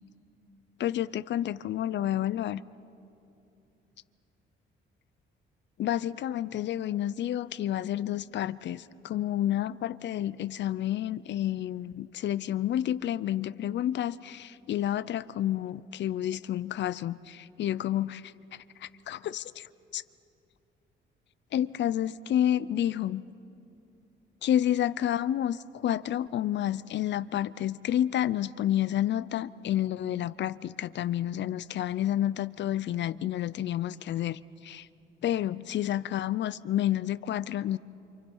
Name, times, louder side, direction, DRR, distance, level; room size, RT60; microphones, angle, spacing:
voice 1, 0.8-2.6 5.8-18.3 18.8-20.0 21.5-23.2 24.4-34.9 35.2-37.8, left 11 dB, 65° left, 17 dB, 0.6 m, -30 dB
28.5 x 26.5 x 5.5 m, 2.7 s
cardioid pair, 90°, 20 cm